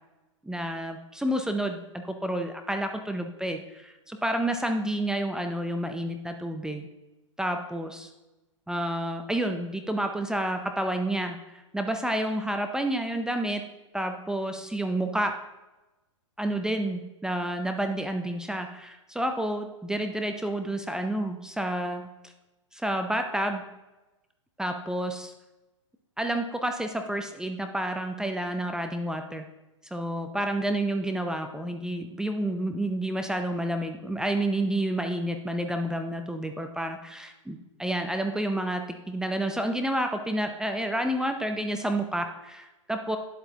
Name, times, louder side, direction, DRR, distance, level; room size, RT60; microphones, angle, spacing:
voice 1, 0.4-6.9 7.4-8.1 8.7-13.6 13.9-15.3 16.4-22.1 22.7-23.7 24.6-25.3 26.2-29.4 29.9-43.2, right 1 dB, 5° right, 5 dB, 0.6 m, -30 dB
10.5 x 7.9 x 2.8 m, 1.0 s
hypercardioid pair, 120°, 17 cm